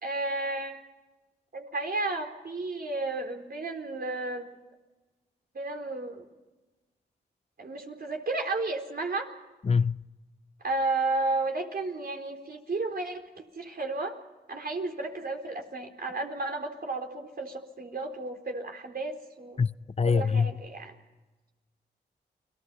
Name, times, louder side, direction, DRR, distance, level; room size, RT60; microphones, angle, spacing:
voice 1, 0.0-0.8 1.5-4.5 5.5-6.3 7.6-9.3 10.6-14.2 14.5-19.6 20.0-20.9, right 2 dB, 55° right, 3.8 m, -33 dB
voice 2, 9.6-10.0 19.6-20.5, left 5 dB, 35° left, 0.6 m, -25 dB
29.5 x 19.5 x 5.7 m
supercardioid pair, 45°, 19 cm